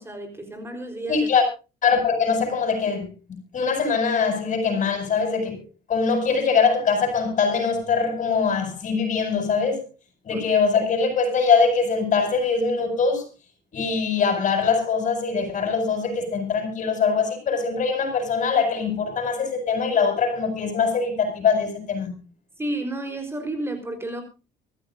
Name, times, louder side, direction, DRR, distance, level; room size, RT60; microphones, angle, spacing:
voice 1, 0.0-1.3 10.3-10.5 22.6-24.2, right 1 dB, 15° right, 4.1 m, -31 dB
voice 2, 1.1-1.4 1.8-3.1 3.5-5.6 5.9-9.9 10.2-13.3 13.7-22.1, left 5 dB, 45° left, 8.0 m, -22 dB
23.5 x 14.5 x 2.6 m
cardioid pair, 110°, 17 cm